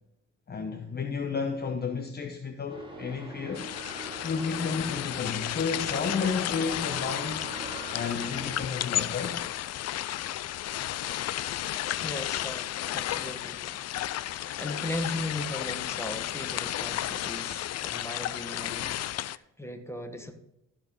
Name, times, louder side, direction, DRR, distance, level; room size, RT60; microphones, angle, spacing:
voice 1, 0.5-3.7 4.2-7.5 7.9-9.4, left 5 dB, 35° left, 1.0 m, -32 dB
sound 1, 2.7-8.7, right 1 dB, 15° right, 2.3 m, -42 dB
sound 2, 3.5-19.4, left 13 dB, 55° left, 0.5 m, -33 dB
voice 2, 12.0-13.7 14.3-20.3, left 1 dB, 10° left, 1.4 m, -38 dB
14.0 x 5.0 x 5.3 m
cardioid pair, 90°, 30 cm